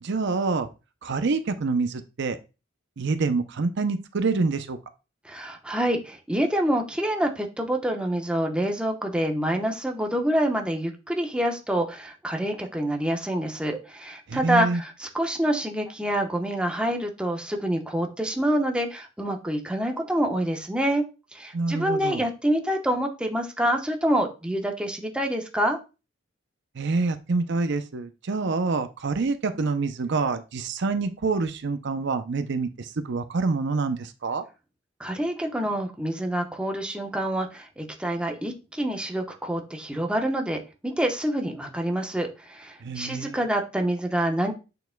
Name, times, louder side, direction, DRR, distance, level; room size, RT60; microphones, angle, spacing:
voice 1, 0.0-0.7 1.0-2.4 3.0-4.8 14.3-14.8 21.5-22.3 26.8-34.4 42.8-43.4, right 4 dB, 60° right, 9 dB, 0.6 m, -26 dB
voice 2, 5.2-21.0 21.3-25.8 35.0-44.5, right 1 dB, 5° right, 2 dB, 1.0 m, -27 dB
8.1 x 6.9 x 2.2 m, 0.30 s
head